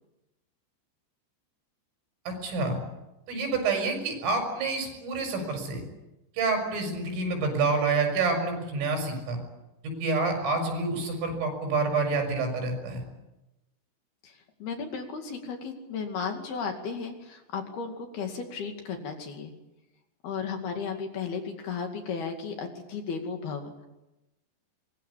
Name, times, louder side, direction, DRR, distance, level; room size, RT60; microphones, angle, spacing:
voice 1, 2.3-2.8 3.3-5.8 6.4-9.4 10.0-13.0, right 3 dB, 80° right, 4 dB, 8.8 m, -28 dB
voice 2, 14.2-19.5 20.2-23.9, left 5 dB, 55° left, 4 dB, 4.0 m, -35 dB
25.0 x 22.0 x 8.6 m, 0.97 s
omnidirectional pair, 5.7 m